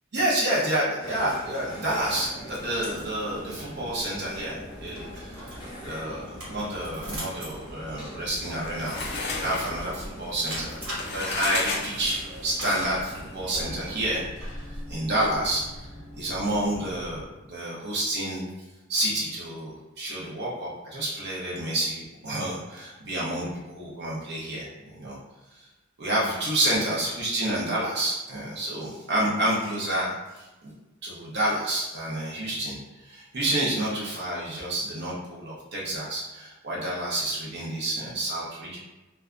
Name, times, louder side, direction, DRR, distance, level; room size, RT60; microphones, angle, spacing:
voice 1, 0.1-10.8 11.1-15.9 16.2-18.4 18.9-25.2 26.0-30.7 31.0-38.8, right 1 dB, 55° right, -6 dB, 0.7 m, -29 dB
sound 1, 1.0-14.3, equal, 20° left, 0.7 m, -43 dB
sound 2, 1.9-17.3, equal, 70° right, 1.3 m, -42 dB
sound 3, 8.3-12.5, left 3 dB, 55° left, 0.4 m, -33 dB
2.6 x 2.2 x 2.4 m, 1.1 s
head